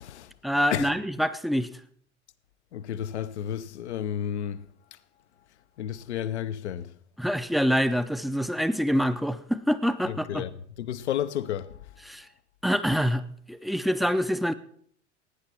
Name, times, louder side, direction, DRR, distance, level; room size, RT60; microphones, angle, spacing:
voice 1, 0.4-1.7 7.2-10.4 12.1-12.2 12.6-14.5, equal, ahead, 0.6 m, -26 dB
voice 2, 2.7-4.7 5.8-6.9 10.0-10.5 10.8-11.8, left 10 dB, 75° left, 0.7 m, -31 dB
16.5 x 9.6 x 4.4 m
figure-of-eight pair, 70°, 34 cm